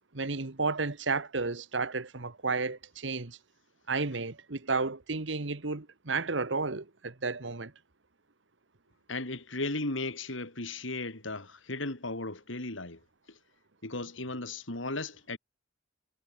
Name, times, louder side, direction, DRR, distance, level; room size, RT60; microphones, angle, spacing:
voice 1, 0.1-3.4 3.9-7.7, right 4 dB, 70° right, 1.4 m, -32 dB
voice 2, 9.1-13.0 13.3-13.4 13.8-15.4, left 2 dB, 85° left, 4.0 m, -36 dB
head